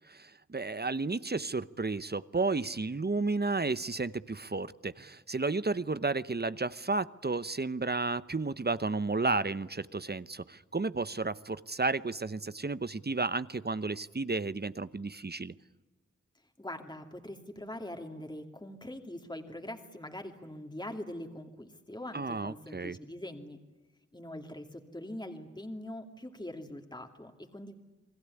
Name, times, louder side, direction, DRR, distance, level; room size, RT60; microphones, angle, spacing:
voice 1, 0.1-15.5 22.1-23.0, right 3 dB, 35° right, 16 dB, 0.8 m, -32 dB
voice 2, 16.6-23.6 24.1-27.7, left 1 dB, 15° left, 4 dB, 2.6 m, -43 dB
29.0 x 21.0 x 9.8 m, 1.1 s
wide cardioid pair, 65°, 29 cm